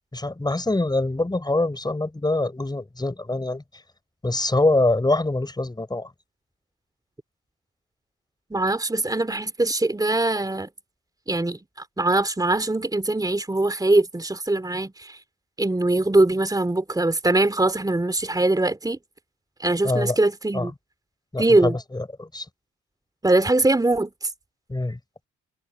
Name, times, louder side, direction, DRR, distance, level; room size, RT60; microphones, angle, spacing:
voice 1, 0.1-3.6 4.2-6.1 19.8-20.2 20.5-20.7 21.3-22.4 24.7-25.0, left 2 dB, 15° left, 6.1 m, -24 dB
voice 2, 8.5-10.7 11.3-11.6 12.0-15.2 15.6-19.0 19.6-20.7 21.4-21.8 23.2-24.1, right 2 dB, 10° right, 3.6 m, -22 dB
supercardioid pair, 75°, 30 cm